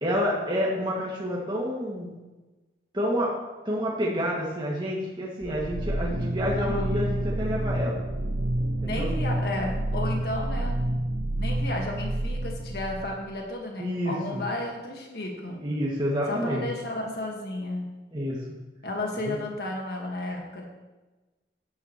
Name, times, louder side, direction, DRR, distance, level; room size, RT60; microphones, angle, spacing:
voice 1, 0.0-2.1 2.9-3.4 3.6-8.1 8.8-9.1 13.8-14.4 15.6-16.6 18.1-18.4 19.2-19.4, equal, 25° right, -4 dB, 2.1 m, -28 dB
sound 1, 5.4-13.3, right 1 dB, 90° right, 1.0 m, -29 dB
voice 2, 8.8-10.8 11.4-15.6 16.3-17.9 18.8-20.6, left 1 dB, 60° left, 0 dB, 1.7 m, -33 dB
13.0 x 10.5 x 3.1 m, 1.2 s
head